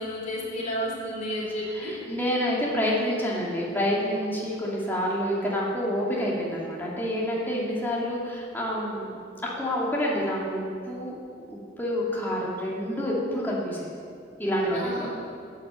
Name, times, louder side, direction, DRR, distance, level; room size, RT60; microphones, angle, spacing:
voice 1, 0.0-1.9 14.7-15.1, equal, 40° left, -4 dB, 3.3 m, -31 dB
voice 2, 1.7-11.1 11.5-13.9 14.4-15.1, equal, 10° left, -5 dB, 2.2 m, -28 dB
9.4 x 8.5 x 7.5 m, 2.3 s
head